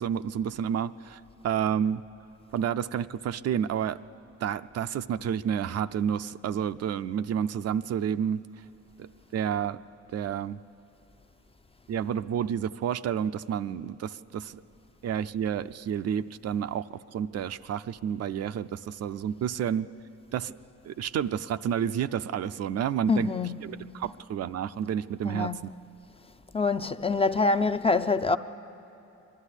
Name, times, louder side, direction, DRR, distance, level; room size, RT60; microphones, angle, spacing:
voice 1, 0.0-2.0 2.5-4.0 4.4-8.4 9.0-9.8 10.1-10.6 11.9-14.6 15.0-19.9 20.3-20.5 20.9-23.3 23.6-25.7, right 8 dB, 55° right, 0.5 m, -30 dB
voice 2, 23.1-23.5 25.2-25.6 26.5-28.4, left 3 dB, 20° left, 0.5 m, -25 dB
23.0 x 12.0 x 9.9 m
cardioid pair, 90°, 30 cm